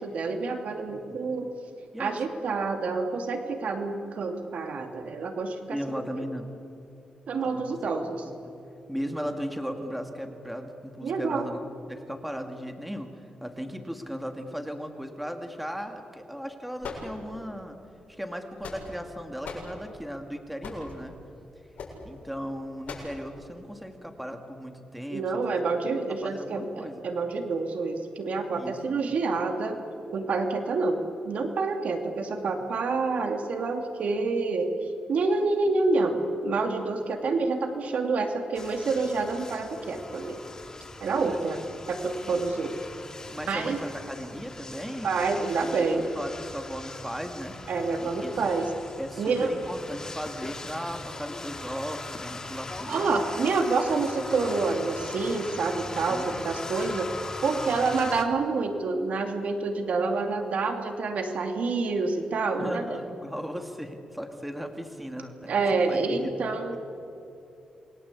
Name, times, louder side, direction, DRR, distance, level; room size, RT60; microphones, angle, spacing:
voice 1, 0.0-1.5 2.0-6.0 7.3-8.2 11.0-11.5 25.1-29.8 30.1-34.7 35.1-40.4 41.0-41.6 41.9-42.8 43.5-43.8 45.0-46.1 47.7-48.7 49.2-49.5 52.9-57.1 57.4-62.9 65.5-66.8, right 3 dB, 70° right, 5 dB, 2.6 m, -28 dB
voice 2, 0.9-1.3 1.9-2.2 5.7-6.5 7.4-7.8 8.1-8.6 8.9-13.1 13.4-17.8 18.1-21.1 22.0-25.3 26.1-27.0 28.6-28.7 32.6-32.7 41.1-41.4 43.3-47.5 48.0-48.6 49.0-53.1 55.9-56.3 57.5-57.8 62.6-66.8, equal, 5° right, 5 dB, 2.3 m, -37 dB
sound 1, 16.8-17.6 18.3-19.1 19.4-19.7 20.6-20.9 21.8-22.0 22.8-23.2, left 4 dB, 75° left, 7.5 m, -39 dB
sound 2, 38.5-58.2, left 2 dB, 25° left, 2.3 m, -40 dB
28.0 x 22.0 x 8.4 m, 2.7 s
wide cardioid pair, 115°, 2 cm